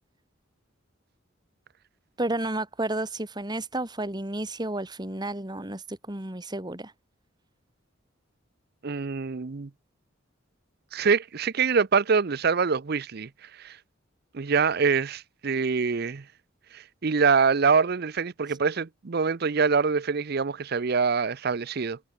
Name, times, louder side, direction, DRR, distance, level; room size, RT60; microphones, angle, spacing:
voice 1, 2.2-6.9 18.5-18.6, right 1 dB, 20° right, 2.2 m, -31 dB
voice 2, 8.8-9.7 10.9-13.3 13.6-13.8 14.3-16.2 16.7-22.0, right 5 dB, 50° right, 0.6 m, -25 dB
head